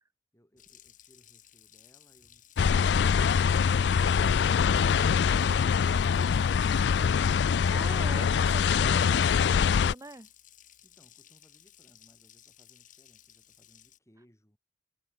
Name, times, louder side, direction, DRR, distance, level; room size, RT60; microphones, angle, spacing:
voice 1, 0.3-3.8 10.8-14.6, equal, 15° left, 7.5 m, -64 dB
Water tap faucet, 0.6-14.0, left 11 dB, 45° left, 7.7 m, -57 dB
sound 1, 2.6-9.9, left 6 dB, 75° left, 0.4 m, -24 dB
voice 2, 7.7-10.3, right 2 dB, 20° right, 0.7 m, -43 dB
head